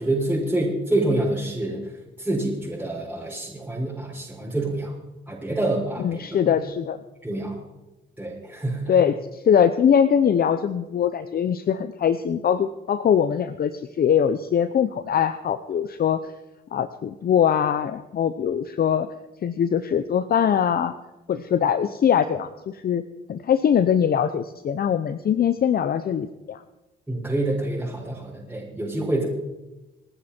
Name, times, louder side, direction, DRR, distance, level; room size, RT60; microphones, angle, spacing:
voice 1, 0.0-1.9 2.2-4.9 5.3-6.0 6.4-6.5 7.2-7.6 8.2-8.8 27.1-29.3, right 1 dB, 10° right, -7 dB, 5.9 m, -26 dB
voice 2, 6.0-7.0 8.9-16.3 16.7-19.1 19.4-20.9 21.3-23.0 23.3-26.6, left 8 dB, 50° left, 12 dB, 0.8 m, -22 dB
28.5 x 9.7 x 4.5 m, 1.0 s
cardioid pair, 90°, 20 cm